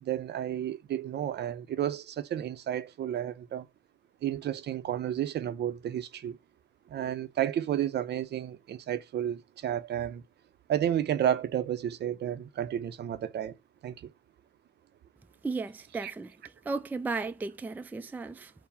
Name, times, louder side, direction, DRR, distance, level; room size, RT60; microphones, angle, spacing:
voice 1, 0.0-3.7 4.2-6.4 6.9-10.2 10.7-13.6 13.8-14.1 16.0-16.1, right 10 dB, 60° right, 0.5 m, -31 dB
voice 2, 15.4-16.4 16.7-18.5, right 3 dB, 10° right, 0.3 m, -35 dB
4.6 x 2.1 x 3.4 m
cardioid pair, 90°, 20 cm